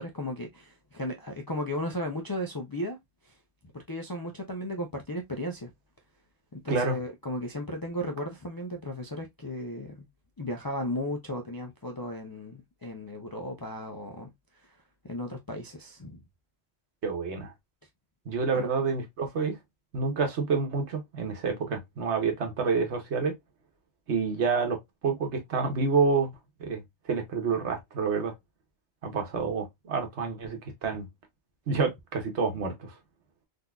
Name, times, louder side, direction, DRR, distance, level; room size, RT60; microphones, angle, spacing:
voice 1, 0.0-3.0 3.2-3.3 3.7-5.7 6.5-10.1 10.4-14.3 15.0-16.2 18.5-18.7, left 1 dB, 35° left, 0.3 m, -35 dB
voice 2, 17.0-17.5 18.3-19.6 19.9-23.3 24.1-26.3 26.6-26.8 27.1-28.3 29.0-31.1 31.7-32.9, right 5 dB, 80° right, 1.3 m, -28 dB
3.8 x 2.7 x 2.3 m
omnidirectional pair, 1.1 m